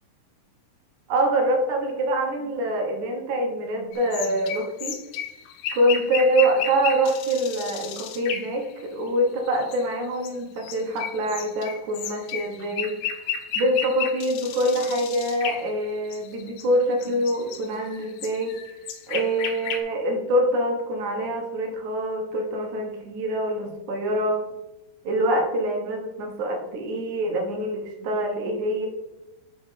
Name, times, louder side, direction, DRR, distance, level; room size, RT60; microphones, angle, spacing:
voice 1, 1.1-5.0 5.7-13.0 13.6-18.6 19.1-24.4 25.0-28.9, right 1 dB, 60° right, 1 dB, 2.2 m, -25 dB
sound 1, 3.9-9.1 9.4-16.7 16.9-19.8, left 7 dB, 85° left, 3.0 m, -34 dB
7.2 x 5.2 x 4.9 m, 0.92 s
omnidirectional pair, 4.6 m